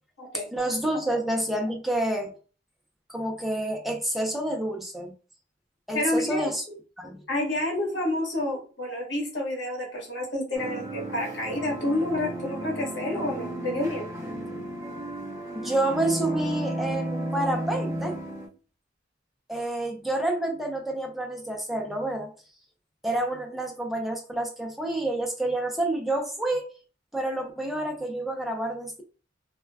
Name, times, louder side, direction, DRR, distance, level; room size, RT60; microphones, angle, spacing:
voice 1, 0.5-2.3 3.1-5.1 5.9-7.2 15.5-18.1 19.5-22.3 23.0-26.7 27.1-29.0, right 1 dB, ahead, 2 dB, 0.4 m, -29 dB
voice 2, 5.9-6.4 7.3-14.0, left 1 dB, 70° left, -1 dB, 1.1 m, -29 dB
sound 1, 10.5-18.5, right 1 dB, 20° right, 0.9 m, -33 dB
2.2 x 2.1 x 3.3 m, 0.37 s
head